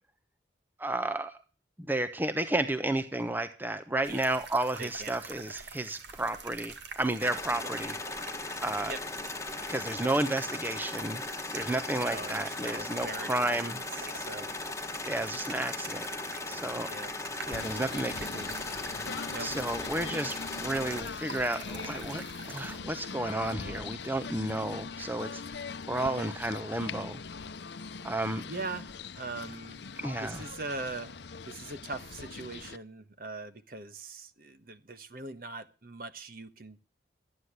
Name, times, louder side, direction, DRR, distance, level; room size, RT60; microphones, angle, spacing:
voice 1, 0.8-1.3 1.9-7.9 8.2-8.9 9.7-11.2 11.5-13.8 15.1-16.1 16.5-16.9 17.5-18.5 18.9-19.0 19.4-27.2 28.0-28.4 30.0-30.4, right 1 dB, 10° right, 10 dB, 0.9 m, -32 dB
sound 1, 4.0-22.8, right 5 dB, 80° right, 2.1 m, -46 dB
voice 2, 4.8-5.2 7.6-7.7 8.8-9.0 11.9-14.5 16.8-17.1 19.3-19.5 26.0-26.3 28.5-28.9 29.2-29.8 30.2-36.8, right 3 dB, 50° right, 11 dB, 1.4 m, -41 dB
sound 2, 7.2-21.0, left 3 dB, 15° left, 1.5 m, -38 dB
Singing / Bird, 17.5-32.8, left 5 dB, 70° left, 0.7 m, -41 dB
13.5 x 9.6 x 8.1 m, 0.35 s
head